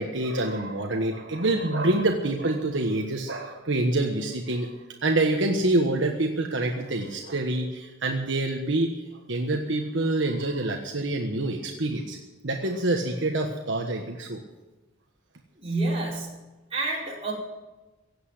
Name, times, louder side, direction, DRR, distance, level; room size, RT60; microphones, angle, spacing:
voice 1, 0.0-4.7 5.0-8.9 9.3-12.2 12.4-14.4, right 2 dB, 70° right, 2 dB, 1.4 m, -26 dB
voice 2, 15.6-16.4 16.7-17.3, right 2 dB, 30° right, -4 dB, 5.0 m, -28 dB
17.0 x 8.3 x 9.9 m, 1.1 s
head